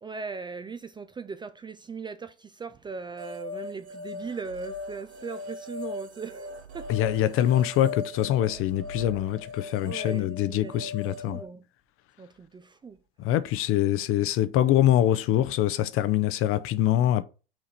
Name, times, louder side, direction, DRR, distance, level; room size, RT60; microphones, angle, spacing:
voice 1, 0.0-7.1 9.8-11.7 12.2-13.0, right 5 dB, 15° right, 0.4 m, -39 dB
sound 1, 3.2-11.4, left 3 dB, 80° right, 1.4 m, -39 dB
voice 2, 6.9-11.4 13.2-17.2, left 12 dB, 40° left, 0.6 m, -24 dB
5.9 x 3.8 x 4.2 m
hypercardioid pair, 80°, 33 cm